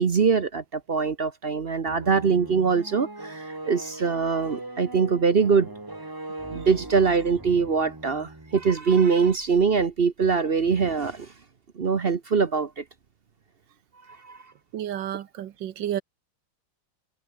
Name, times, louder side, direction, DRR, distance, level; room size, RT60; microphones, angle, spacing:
voice 1, 0.0-5.7 6.5-11.3 11.8-12.8 14.2-14.4, right 5 dB, 45° right, 0.8 m, -23 dB
sound 1, 1.8-8.8, right 2 dB, 10° right, 1.4 m, -40 dB
voice 2, 14.7-16.0, right 11 dB, 65° right, 1.5 m, -31 dB
omnidirectional pair, 2.2 m